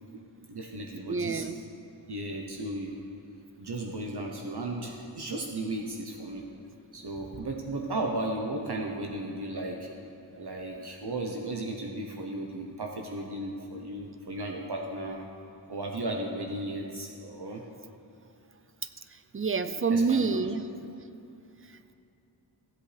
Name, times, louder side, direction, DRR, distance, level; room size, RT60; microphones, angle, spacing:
voice 1, 0.5-1.4 2.1-2.9 3.6-6.4 6.9-9.9 10.3-15.2 15.7-17.6 19.9-20.4, right 1 dB, 65° right, 0 dB, 0.9 m, -35 dB
voice 2, 1.1-1.6 19.1-20.7 21.7-21.9, right 4 dB, 30° right, 11 dB, 0.4 m, -28 dB
15.5 x 8.0 x 3.4 m, 2.6 s
wide cardioid pair, 70°, 43 cm